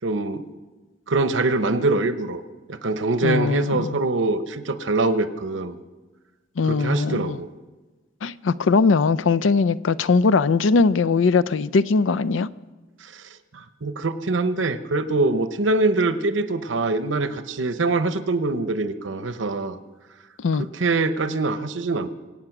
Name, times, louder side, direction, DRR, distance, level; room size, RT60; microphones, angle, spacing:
voice 1, 0.0-0.4 1.1-2.4 2.7-5.8 6.6-7.5 13.5-19.8 20.6-22.1, right 3 dB, 85° right, 12 dB, 0.9 m, -24 dB
voice 2, 3.2-4.0 6.6-7.4 8.2-12.5 20.4-20.7, left 4 dB, 90° left, 15 dB, 0.5 m, -20 dB
24.5 x 8.6 x 6.0 m, 1.2 s
head